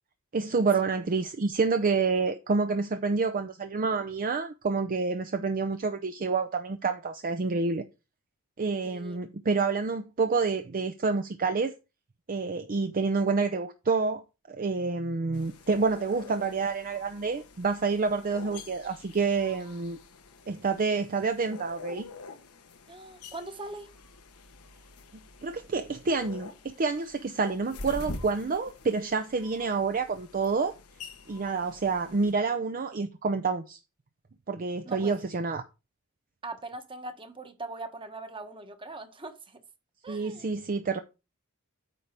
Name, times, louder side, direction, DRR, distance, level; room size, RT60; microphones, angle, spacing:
voice 1, 0.3-7.8 8.6-11.7 12.3-14.2 14.5-20.0 20.5-22.0 25.1-30.7 31.3-33.8 34.5-35.6 40.1-41.0, right 4 dB, 40° right, 0.5 m, -28 dB
voice 2, 8.8-9.2 22.9-23.9 34.8-35.2 36.4-39.6 40.0-40.5, right 2 dB, 25° right, 1.1 m, -41 dB
sound 1, 15.3-32.3, left 3 dB, 90° left, 1.1 m, -46 dB
9.1 x 3.4 x 5.6 m
head